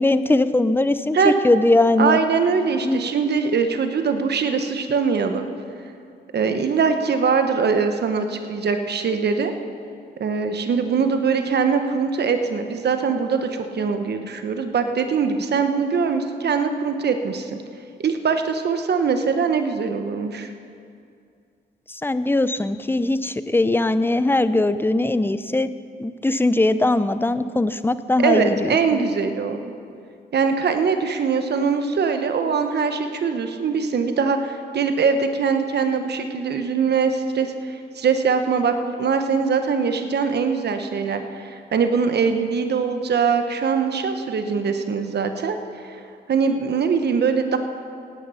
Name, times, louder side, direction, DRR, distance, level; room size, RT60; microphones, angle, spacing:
voice 1, 0.0-2.2 2.8-3.0 21.9-25.7 26.0-29.0, left 2 dB, 10° left, 13 dB, 0.6 m, -20 dB
voice 2, 2.0-5.5 6.3-9.5 10.2-17.6 18.0-20.5 28.2-29.7 30.3-45.6 45.8-46.0 46.3-47.6, right 5 dB, 65° right, 7 dB, 1.1 m, -22 dB
17.5 x 10.0 x 5.7 m, 2.4 s
cardioid pair, 70°, 19 cm